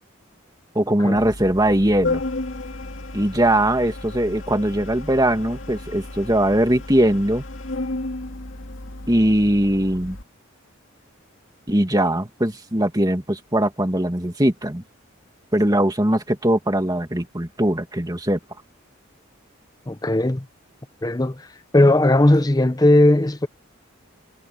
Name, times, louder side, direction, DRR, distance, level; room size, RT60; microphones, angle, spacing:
voice 1, 0.7-2.2 3.1-7.4 9.1-10.2 11.7-14.8 15.5-18.4, right 1 dB, 20° right, 2.2 m, -20 dB
Organ, 1.2-10.2, left 2 dB, 70° left, 2.3 m, -33 dB
voice 2, 19.9-20.5 21.0-21.5 21.7-23.5, left 1 dB, 20° left, 0.7 m, -17 dB
head